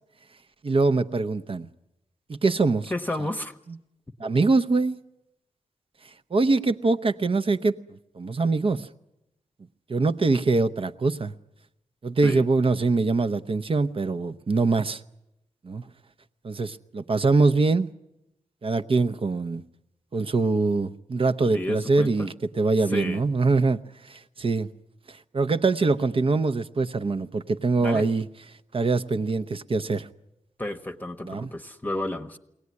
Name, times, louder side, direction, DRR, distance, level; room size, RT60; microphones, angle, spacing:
voice 1, 0.6-1.7 2.3-2.9 4.2-5.0 6.3-8.9 9.9-11.3 12.0-15.0 15.6-15.8 16.4-17.9 18.6-19.6 20.1-23.8 24.1-24.7 25.3-28.3 28.7-30.1 31.2-31.5, right 3 dB, 45° right, 0.8 m, -23 dB
voice 2, 2.9-3.6 4.2-4.3 12.2-12.4 21.4-22.3 22.8-23.2 27.8-28.1 30.6-32.4, left 1 dB, 15° left, 1.0 m, -32 dB
22.5 x 18.0 x 9.6 m
wide cardioid pair, 100°, 13 cm